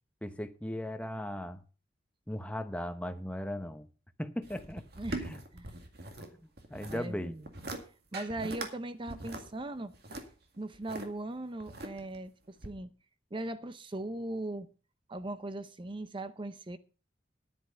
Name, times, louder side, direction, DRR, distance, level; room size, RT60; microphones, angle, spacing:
voice 1, 0.2-1.6 2.3-3.9 4.2-5.4 6.2-6.3 6.7-7.3, left 1 dB, 5° left, 0.8 m, -37 dB
sound 1, 4.4-6.3 6.6-7.0 7.4-7.8 8.1-8.7 9.1-11.1 11.6-12.2 12.6-12.7, right 2 dB, 55° right, 2.0 m, -41 dB
voice 2, 6.8-7.5 8.1-9.9 10.6-12.9 13.3-14.7 15.1-16.8, right 2 dB, 25° right, 0.6 m, -39 dB
10.5 x 9.7 x 5.6 m
head